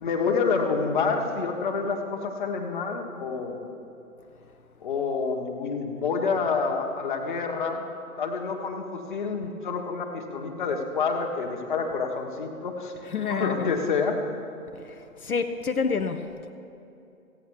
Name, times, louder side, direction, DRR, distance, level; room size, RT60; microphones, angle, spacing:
voice 1, 0.0-3.7 4.8-7.9 8.2-12.9 13.3-14.2, left 5 dB, 35° left, 3 dB, 1.3 m, -28 dB
voice 2, 13.1-13.7 14.8-15.0 15.2-16.5, left 5 dB, 75° left, 6 dB, 0.8 m, -28 dB
15.5 x 8.9 x 6.3 m, 2.7 s
figure-of-eight pair, 140°, 45 cm